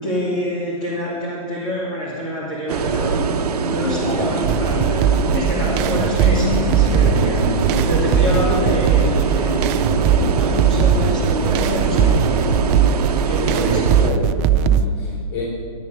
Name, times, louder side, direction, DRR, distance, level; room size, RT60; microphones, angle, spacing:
voice 1, 0.0-3.3 3.6-12.4 13.2-13.8, equal, 25° left, -6 dB, 2.8 m, -27 dB
sound 1, 2.7-14.1, right 5 dB, 80° right, 0.9 m, -23 dB
sound 2, 3.8-12.9, left 5 dB, 80° left, 1.0 m, -30 dB
sound 3, 4.4-14.9, right 8 dB, 25° right, 0.5 m, -19 dB
voice 2, 13.3-15.4, left 2 dB, 50° left, -5 dB, 3.4 m, -28 dB
11.5 x 8.3 x 6.7 m, 2.2 s
hypercardioid pair, 135°, 20 cm